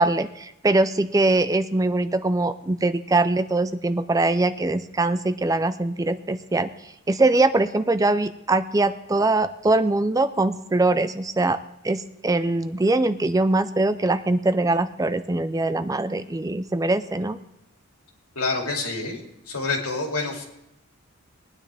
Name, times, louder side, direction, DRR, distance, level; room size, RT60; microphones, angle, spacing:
voice 1, 0.0-6.7 7.1-11.6 11.8-17.4, right 2 dB, 15° right, 11 dB, 0.4 m, -22 dB
voice 2, 18.4-19.2 19.5-20.4, left 3 dB, 90° left, 1 dB, 2.6 m, -27 dB
20.0 x 9.7 x 3.5 m, 0.85 s
head